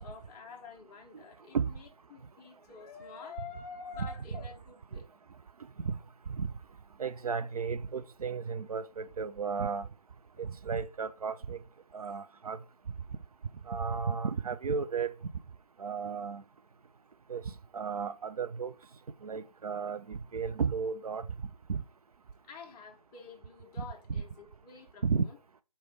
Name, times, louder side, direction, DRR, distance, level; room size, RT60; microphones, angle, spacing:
voice 1, 0.0-5.1 22.4-25.4, left 5 dB, 15° left, 0.7 m, -48 dB
voice 2, 7.0-9.9 10.4-11.6 11.9-12.6 13.7-15.1 15.8-16.4 17.3-18.7 19.2-21.3 21.7-21.8 23.8-24.2 25.0-25.2, right 5 dB, 75° right, 0.4 m, -33 dB
4.4 x 3.2 x 3.2 m
figure-of-eight pair, 145°, 19 cm